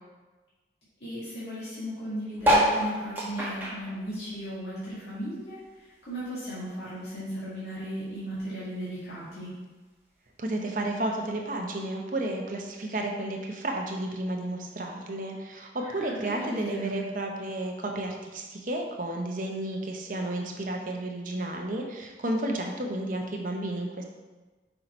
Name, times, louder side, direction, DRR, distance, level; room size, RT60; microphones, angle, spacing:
voice 1, 1.0-9.5 15.8-16.9, equal, 75° left, -11 dB, 2.0 m, -36 dB
sound 1, 2.4-5.1 5.5-7.0 7.5-7.6 7.8-7.9 8.0-8.4 9.2-9.3, equal, 10° right, 1.1 m, -27 dB
voice 2, 10.4-24.0, right 1 dB, 50° right, 1 dB, 0.8 m, -32 dB
5.6 x 4.1 x 4.3 m, 1.2 s
head